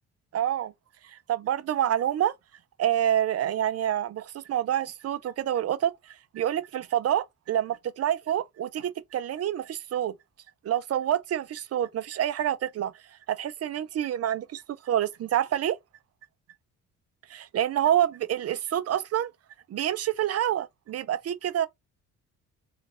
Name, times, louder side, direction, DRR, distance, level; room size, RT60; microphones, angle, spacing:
voice 1, 0.3-0.7 1.0-2.3 2.8-10.1 10.6-12.9 13.3-15.8 17.3-19.3 19.7-21.7, right 11 dB, 55° right, 0.6 m, -27 dB
3.8 x 2.5 x 3.7 m
cardioid pair, 90°, 30 cm